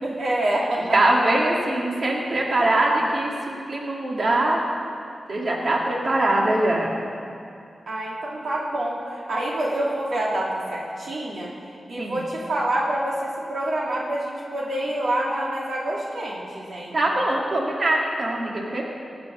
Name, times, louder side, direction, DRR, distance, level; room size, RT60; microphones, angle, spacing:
voice 1, 0.0-0.9 7.9-11.5 11.9-17.0, right 1 dB, 75° right, -4 dB, 2.3 m, -27 dB
voice 2, 0.8-4.6 5.3-6.9 12.0-12.2 16.9-18.8, right 1 dB, 60° right, -2 dB, 2.1 m, -22 dB
17.5 x 7.1 x 6.1 m, 2.4 s
cardioid pair, 55°, 0 cm